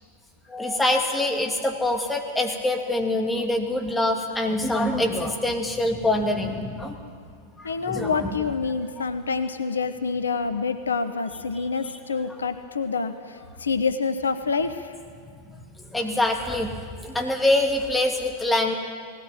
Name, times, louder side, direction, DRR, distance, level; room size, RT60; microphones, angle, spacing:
voice 1, 0.5-7.0 7.6-8.4 11.5-11.7 15.5-18.7, left 1 dB, 10° left, 1 dB, 2.7 m, -25 dB
voice 2, 7.6-14.9, left 4 dB, 70° left, 10 dB, 0.9 m, -27 dB
19.0 x 17.5 x 9.1 m, 2.1 s
figure-of-eight pair, 90°, 0 cm